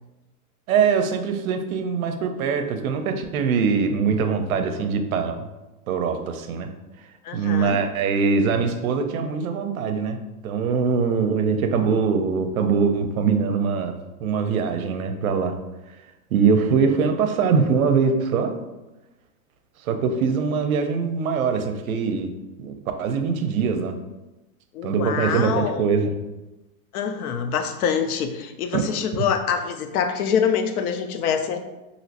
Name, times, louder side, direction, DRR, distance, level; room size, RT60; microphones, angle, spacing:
voice 1, 0.7-5.5 5.9-6.7 7.3-15.5 16.3-18.5 19.8-22.3 22.6-24.0 24.8-26.1 28.7-28.8, right 5 dB, 65° right, 7 dB, 0.6 m, -22 dB
voice 2, 7.2-7.8 24.7-26.0 26.9-31.6, left 7 dB, 75° left, 8 dB, 0.5 m, -25 dB
3.0 x 2.8 x 2.8 m, 1.0 s
supercardioid pair, 180°, 45 cm